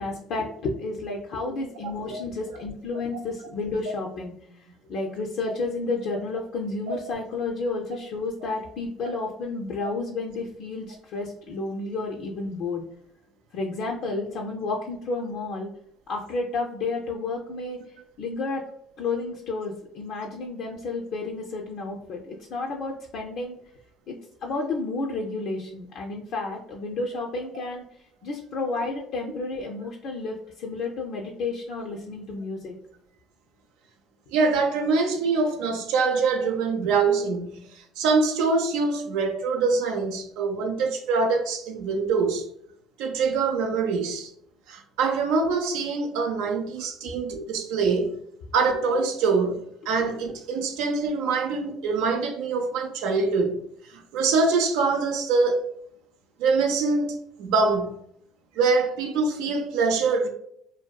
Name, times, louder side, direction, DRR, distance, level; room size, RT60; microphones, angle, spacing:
voice 1, 0.0-12.8 13.5-15.7 16.1-17.8 18.2-18.6 19.0-23.6 24.1-24.2 24.4-27.8 28.2-32.7 47.0-47.1, left 3 dB, 65° left, 0.3 m, -31 dB
voice 2, 34.3-42.5 43.0-44.3 44.7-48.2 48.5-53.6 53.9-55.7 56.4-58.0 58.5-60.3, right 4 dB, 80° right, 0.4 m, -24 dB
2.6 x 2.2 x 2.2 m
supercardioid pair, 75°, 0 cm